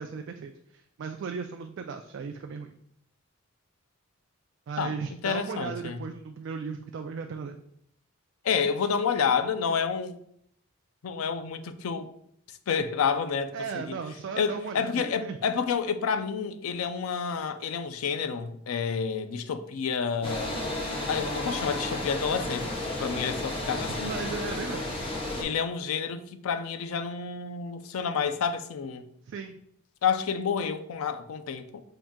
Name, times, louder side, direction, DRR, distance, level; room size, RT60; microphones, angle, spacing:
voice 1, 0.0-2.7 4.7-7.6 13.5-15.4 23.9-24.9 29.3-29.6, right 5 dB, 55° right, 0.3 m, -36 dB
voice 2, 4.8-6.0 8.4-10.2 11.0-12.1 12.7-14.0 14.4-20.6 21.1-22.7 23.0-24.1 25.4-29.0 30.0-31.8, left 6 dB, 80° left, 0.4 m, -29 dB
sound 1, 20.2-25.4, left 1 dB, 25° left, 0.7 m, -32 dB
5.6 x 2.6 x 3.6 m
head